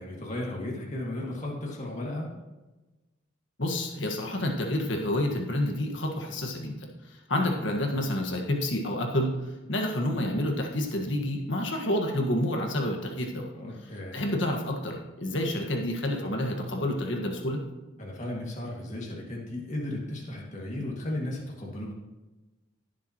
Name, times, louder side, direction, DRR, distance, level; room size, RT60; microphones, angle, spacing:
voice 1, 0.0-2.3 13.5-14.2 18.0-21.9, left 1 dB, 35° left, -2 dB, 2.1 m, -35 dB
voice 2, 3.6-13.5 14.1-17.6, left 1 dB, 65° left, 2 dB, 1.6 m, -29 dB
17.0 x 7.2 x 3.0 m, 1.1 s
head